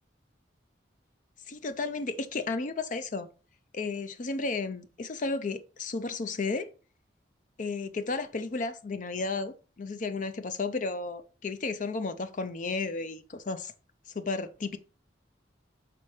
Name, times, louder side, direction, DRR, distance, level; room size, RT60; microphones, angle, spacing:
voice 1, 1.5-3.3 3.7-6.7 7.6-13.7 14.2-14.8, left 3 dB, 45° left, 0.5 m, -33 dB
5.9 x 4.2 x 4.8 m
head